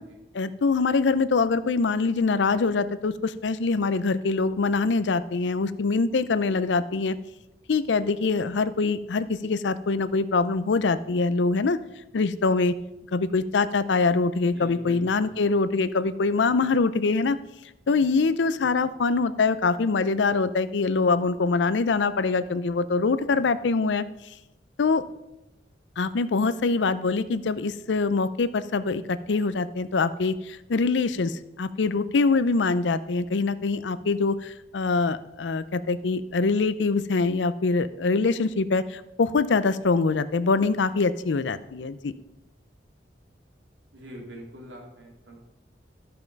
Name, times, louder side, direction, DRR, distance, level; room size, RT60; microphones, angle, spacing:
voice 1, 0.3-7.2 7.7-11.8 12.1-12.7 13.1-17.4 17.9-24.0 24.8-25.0 26.0-42.1, left 4 dB, 80° left, 15 dB, 0.5 m, -24 dB
voice 2, 14.5-15.5 43.9-45.4, equal, 90° right, 0 dB, 2.6 m, -43 dB
13.0 x 5.8 x 5.2 m, 0.95 s
head